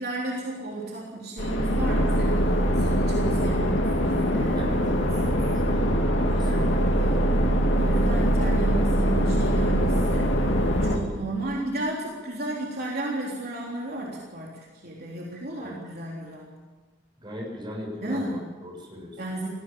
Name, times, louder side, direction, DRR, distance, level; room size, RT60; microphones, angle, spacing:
voice 1, 0.0-6.0 6.3-7.2 7.7-10.4 10.8-16.5 18.0-18.5 19.2-19.5, right 2 dB, 55° right, -3 dB, 3.6 m, -34 dB
sound 1, 1.4-11.0, equal, 90° left, 2.8 m, -23 dB
voice 2, 4.5-4.8 6.3-6.9 15.6-15.8 17.2-19.2, equal, 25° right, -1 dB, 7.3 m, -38 dB
20.0 x 16.0 x 8.7 m, 1.4 s
head